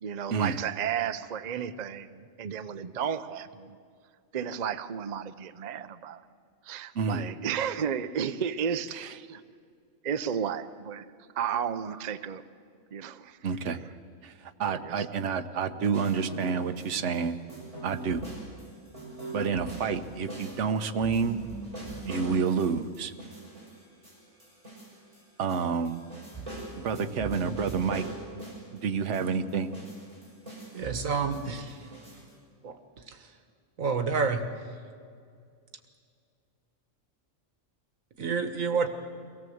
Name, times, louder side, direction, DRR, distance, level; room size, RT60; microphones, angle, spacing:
voice 1, 0.0-3.8 4.3-6.2 6.6-9.4 10.0-11.1 11.3-12.4 12.9-13.4 13.7-13.8 14.6-15.1, right 8 dB, 45° right, 11 dB, 0.6 m, -33 dB
voice 2, 13.4-13.8 14.2-14.3 14.6-17.4 17.8-18.2 19.3-21.4 22.0-23.1 25.4-26.0 26.8-28.0 28.7-29.7, right 6 dB, 65° right, 8 dB, 1.2 m, -29 dB
sound 1, 15.9-17.2 17.5-25.2 25.5-28.8 29.1-32.3, right 2 dB, 25° right, 6.3 m, -41 dB
voice 3, 30.7-31.8 32.6-32.8 33.8-34.4 38.2-38.9, right 5 dB, 90° right, 8 dB, 1.8 m, -28 dB
23.5 x 17.5 x 7.8 m, 2.2 s
omnidirectional pair, 1.4 m